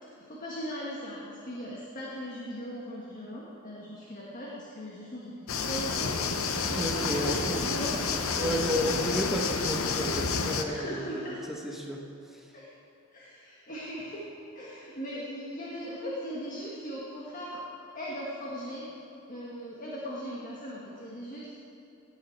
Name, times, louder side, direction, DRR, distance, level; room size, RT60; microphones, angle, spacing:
voice 1, 0.2-8.5 10.6-11.4 11.7-11.8 12.5-12.7 13.1-14.3 14.5-17.6 17.9-18.9 19.3-21.5, equal, 40° left, -5 dB, 1.5 m, -39 dB
sound 1, 5.5-10.6, left 5 dB, 80° left, 0.8 m, -30 dB
voice 2, 6.6-12.1 12.3-12.5, equal, ahead, 0 dB, 0.9 m, -33 dB
17.0 x 8.1 x 4.5 m, 2.8 s
head